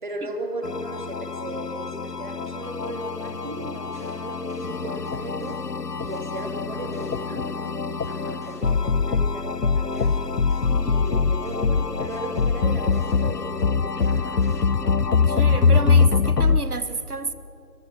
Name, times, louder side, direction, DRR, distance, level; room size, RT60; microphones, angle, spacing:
voice 1, 0.0-5.6 6.0-10.2 10.8-14.3, right 2 dB, 30° right, 4 dB, 2.3 m, -36 dB
sound 1, 0.6-16.6, left 5 dB, 85° left, 1.0 m, -23 dB
sound 2, 3.2-7.7 8.0-13.7 14.0-15.2, equal, 10° left, 1.3 m, -48 dB
voice 2, 10.7-11.0 15.1-17.3, right 3 dB, 70° right, 12 dB, 1.6 m, -31 dB
23.0 x 21.5 x 7.5 m, 2.8 s
figure-of-eight pair, 165°, 46 cm